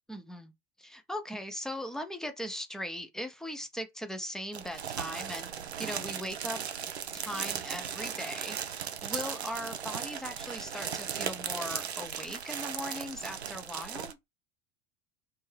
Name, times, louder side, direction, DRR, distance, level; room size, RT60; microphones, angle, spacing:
voice 1, 0.1-0.5 0.8-5.5 5.8-6.6 7.1-8.6 9.0-14.2, equal, ahead, 0.4 m, -39 dB
sound 1, 4.5-14.1, right 8 dB, 80° right, 0.5 m, -37 dB
2.6 x 2.3 x 3.1 m
figure-of-eight pair, 75°, 32 cm